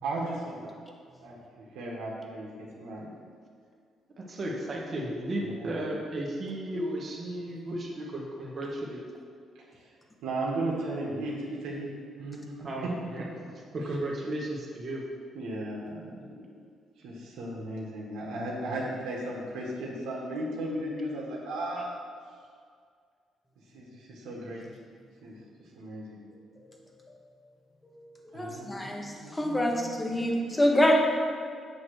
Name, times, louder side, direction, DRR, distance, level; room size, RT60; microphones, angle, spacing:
voice 1, 0.0-0.7 1.2-3.1 5.4-5.9 9.7-9.9 10.2-11.9 12.2-12.5 15.3-16.5 17.0-21.9 23.7-24.7 25.2-25.4 25.7-26.2 28.3-30.0, right 1 dB, 85° right, -4 dB, 1.5 m, -36 dB
voice 2, 4.2-9.0 12.6-13.3 13.7-15.0, right 1 dB, 40° right, -2 dB, 1.5 m, -34 dB
voice 3, 28.3-30.9, left 1 dB, 15° left, 0 dB, 1.1 m, -26 dB
8.4 x 3.0 x 6.4 m, 2.1 s
cardioid pair, 90°, 0 cm